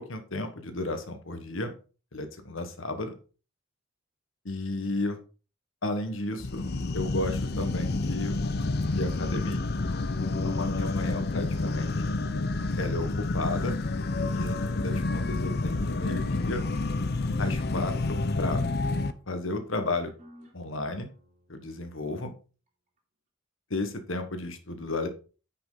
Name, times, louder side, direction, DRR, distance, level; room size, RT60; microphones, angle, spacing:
voice 1, 0.0-1.7 2.1-3.1 4.4-5.2 5.8-6.6 6.9-8.4 8.9-9.7 10.2-11.9 12.8-13.8 14.3-16.6 17.4-18.6 19.3-20.1 20.5-21.1 21.5-22.3 23.7-25.1, left 2 dB, 70° left, 8 dB, 1.4 m, -33 dB
sound 1, 6.4-19.1, left 2 dB, 50° left, 0.6 m, -29 dB
sound 2, 18.5-21.7, equal, 35° right, 2.8 m, -51 dB
9.7 x 5.8 x 3.9 m, 0.36 s
head